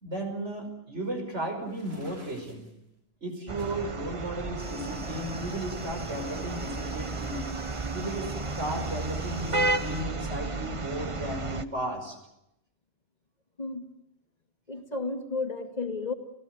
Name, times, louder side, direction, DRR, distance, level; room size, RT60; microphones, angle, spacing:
voice 1, 0.0-2.7 3.2-7.4 7.9-12.2, right 1 dB, 90° right, 4 dB, 5.7 m, -35 dB
sound 1, 1.6-2.7 3.6-3.9 4.5-5.6, right 1 dB, 65° right, 6.4 m, -50 dB
sound 2, 3.5-11.7, right 3 dB, 30° right, 1.0 m, -33 dB
sound 3, 4.6-10.1, equal, 10° right, 2.5 m, -47 dB
voice 2, 14.7-16.1, left 3 dB, 35° left, 4 dB, 2.5 m, -32 dB
30.0 x 17.0 x 7.8 m, 0.85 s
omnidirectional pair, 1.2 m